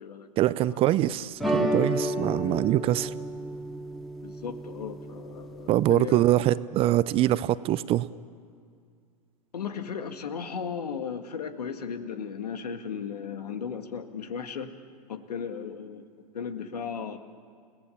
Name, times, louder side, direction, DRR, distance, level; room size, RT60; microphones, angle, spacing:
voice 1, 0.4-3.1 5.7-8.1, right 14 dB, 30° right, 17 dB, 0.5 m, -24 dB
sound 1, 1.4-6.3, right 1 dB, ahead, 2.2 m, -32 dB
voice 2, 4.2-6.2 9.5-14.8 15.1-16.1 16.3-17.2, left 6 dB, 75° left, 8 dB, 1.9 m, -36 dB
30.0 x 18.0 x 7.2 m, 2.2 s
figure-of-eight pair, 105°, 21 cm